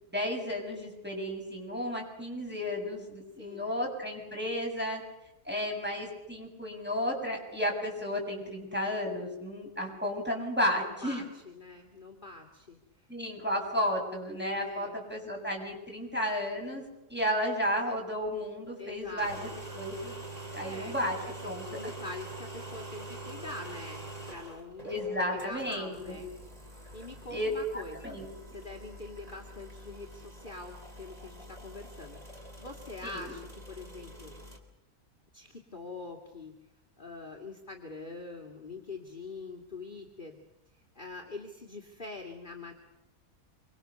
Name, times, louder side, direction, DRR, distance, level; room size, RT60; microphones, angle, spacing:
voice 1, 0.1-5.0 5.5-11.2 13.1-16.8 17.1-20.1 20.5-21.2 21.4-21.6 24.8-26.2 27.3-28.3 33.0-33.3, equal, 5° right, 0 dB, 7.2 m, -33 dB
voice 2, 3.3-3.7 10.8-13.1 14.6-15.0 18.8-19.6 20.6-25.0 25.3-26.3 26.7-28.2 28.5-34.3 35.3-36.5 37.0-40.4 40.9-42.7, left 3 dB, 30° left, 1 dB, 2.5 m, -44 dB
sound 1, 19.0-34.6, right 2 dB, 25° right, 3.9 m, -45 dB
26.5 x 25.5 x 6.8 m, 0.89 s
omnidirectional pair, 1.7 m